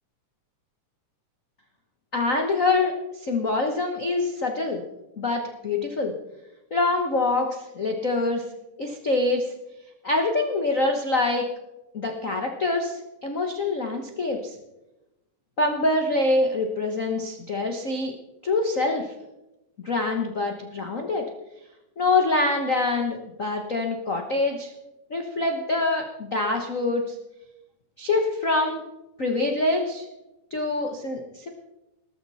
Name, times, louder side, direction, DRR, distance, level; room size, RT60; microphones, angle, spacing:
voice 1, 2.1-4.8 5.2-6.1 6.7-8.4 8.8-9.5 10.0-11.4 11.9-14.5 15.6-18.1 18.4-19.1 19.8-21.3 22.0-24.7 25.1-27.1 28.0-28.8 29.2-30.1 30.5-31.5, left 2 dB, 75° left, 3 dB, 0.7 m, -25 dB
19.0 x 13.5 x 4.2 m, 0.94 s
omnidirectional pair, 3.7 m